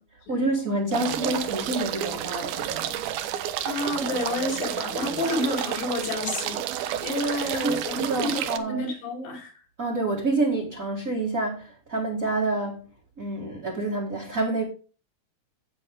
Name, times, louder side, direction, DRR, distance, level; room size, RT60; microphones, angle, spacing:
voice 1, 0.3-3.0 7.6-8.8 9.8-12.8 13.2-14.6, right 2 dB, 35° right, 1.3 m, -28 dB
sound 1, 0.9-8.6, right 11 dB, 80° right, 2.6 m, -30 dB
voice 2, 3.6-6.6 7.0-9.5, left 2 dB, 65° left, 4.8 m, -29 dB
10.5 x 8.1 x 3.6 m
omnidirectional pair, 4.4 m